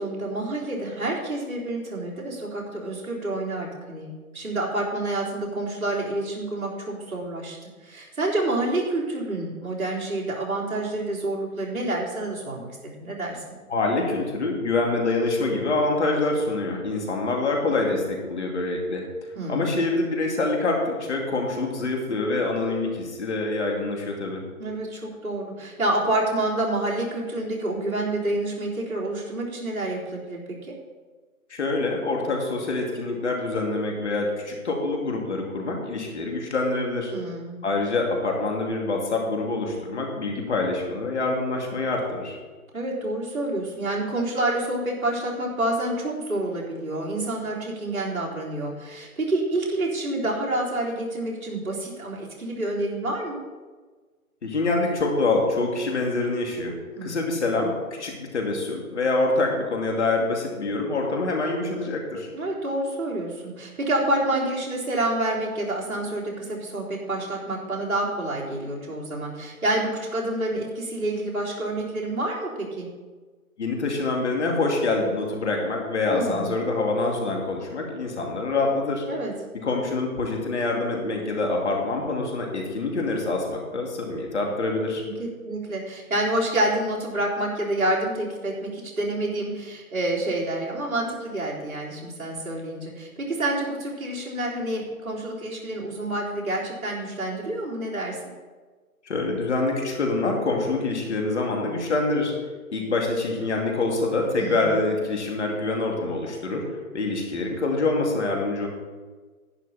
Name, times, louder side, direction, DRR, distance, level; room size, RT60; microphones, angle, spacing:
voice 1, 0.0-7.6 7.8-13.5 19.4-19.8 24.6-30.7 37.1-37.6 42.7-53.4 57.0-57.4 62.3-72.5 72.8-72.9 76.1-76.5 79.0-79.3 85.0-98.2 104.3-104.8, right 1 dB, 70° right, -4 dB, 3.8 m, -28 dB
voice 2, 13.7-19.0 19.5-24.4 31.5-37.1 37.6-42.4 54.4-62.3 73.6-79.1 79.6-85.0 99.1-102.3 102.7-108.7, left 2 dB, 50° left, 0 dB, 2.6 m, -26 dB
11.0 x 10.0 x 4.2 m, 1.4 s
figure-of-eight pair, 150°, 44 cm